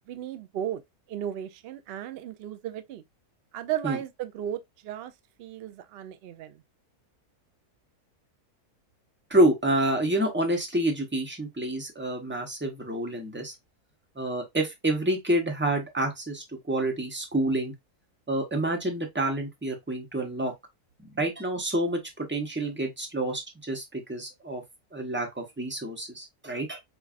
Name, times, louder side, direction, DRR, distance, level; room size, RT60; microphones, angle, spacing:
voice 1, 0.1-0.8 1.1-3.0 3.5-5.1 5.4-6.6, right 10 dB, 85° right, 0.5 m, -35 dB
voice 2, 9.3-13.5 14.2-17.7 18.3-20.5 21.0-24.6 24.9-26.8, right 1 dB, 10° right, 0.7 m, -28 dB
5.2 x 2.4 x 2.4 m
omnidirectional pair, 1.6 m